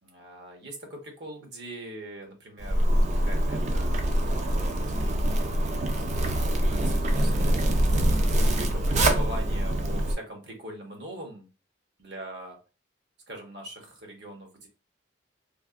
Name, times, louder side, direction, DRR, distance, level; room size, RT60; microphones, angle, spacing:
voice 1, 0.0-4.0 5.0-5.5 5.9-6.2 6.5-7.6 8.3-11.5 12.0-12.6 13.3-14.7, right 1 dB, 65° right, 2 dB, 1.0 m, -42 dB
Zipper (clothing), 2.6-10.1, right 1 dB, 40° right, 0.4 m, -24 dB
3.3 x 2.5 x 2.5 m, 0.31 s
head